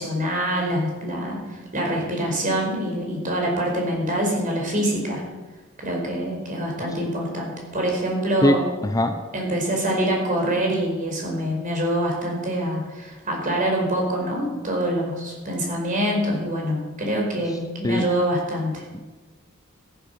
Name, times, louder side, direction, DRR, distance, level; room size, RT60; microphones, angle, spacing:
voice 1, 0.0-5.2 5.8-8.6 9.3-19.1, right 1 dB, 40° right, 0 dB, 4.8 m, -25 dB
voice 2, 8.4-9.2 17.8-18.1, left 1 dB, 15° left, 7 dB, 0.7 m, -21 dB
14.0 x 11.0 x 6.8 m, 1.2 s
head